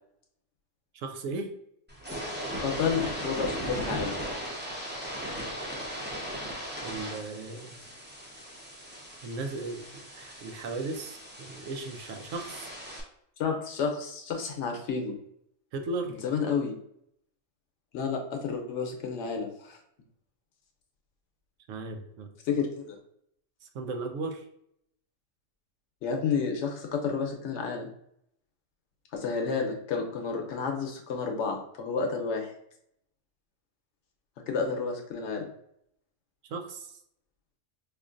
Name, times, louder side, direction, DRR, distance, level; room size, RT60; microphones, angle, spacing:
voice 1, 0.9-1.5 6.8-7.8 9.2-12.7 15.7-16.2 21.7-22.3 23.6-24.5 36.5-36.9, right 3 dB, 85° right, 5 dB, 1.0 m, -36 dB
sound 1, 1.9-13.0, equal, 15° right, 0.4 m, -38 dB
voice 2, 2.6-4.2 13.4-15.2 16.1-16.8 17.9-19.8 22.4-23.0 26.0-27.9 29.1-32.5 34.5-35.5, left 5 dB, 70° left, 3 dB, 0.9 m, -30 dB
5.0 x 2.5 x 2.4 m, 0.73 s
omnidirectional pair, 1.3 m